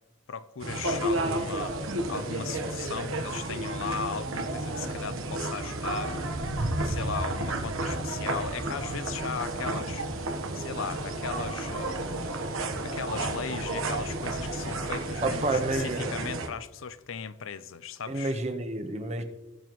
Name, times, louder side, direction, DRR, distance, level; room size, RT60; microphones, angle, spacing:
voice 1, 0.3-6.2 6.8-12.3 12.6-18.4, left 6 dB, 70° left, 0.5 m, -37 dB
sound 1, 0.6-16.5, right 2 dB, 80° right, 1.2 m, -32 dB
voice 2, 15.2-16.1 18.1-19.2, right 2 dB, 30° right, 1.0 m, -29 dB
20.5 x 7.0 x 3.1 m
head